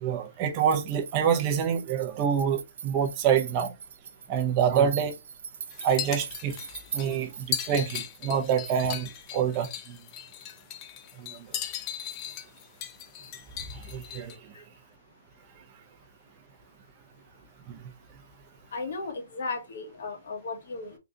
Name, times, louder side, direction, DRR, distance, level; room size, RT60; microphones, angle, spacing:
voice 1, 0.0-3.7 4.3-5.1 5.8-6.5 6.9-9.1 9.3-10.0 11.2-11.3 13.9-14.3 17.7-17.8, right 8 dB, 25° right, 0.6 m, -26 dB
sound 1, 0.5-9.0, right 7 dB, 55° right, 0.8 m, -42 dB
sound 2, 5.7-14.4, left 10 dB, 20° left, 0.4 m, -37 dB
voice 2, 18.7-21.0, left 3 dB, 60° left, 1.3 m, -35 dB
3.8 x 2.3 x 3.8 m
hypercardioid pair, 170°, 0 cm